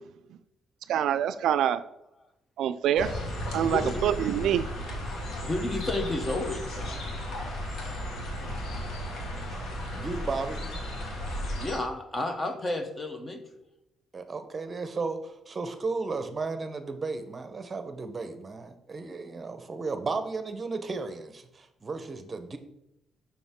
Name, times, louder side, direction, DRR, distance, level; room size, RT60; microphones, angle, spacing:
voice 1, 0.9-1.8 2.6-3.1 3.5-4.7, right 10 dB, 80° right, 12 dB, 0.3 m, -25 dB
sound 1, 3.0-11.8, equal, 80° left, 1.6 m, -34 dB
voice 2, 3.7-4.0 5.1-7.0 11.6-13.6, left 2 dB, 25° left, 7 dB, 0.9 m, -32 dB
voice 3, 10.0-10.7 14.1-22.6, right 4 dB, 30° right, 8 dB, 0.8 m, -34 dB
7.0 x 5.9 x 3.7 m, 0.83 s
cardioid pair, 115°, 0 cm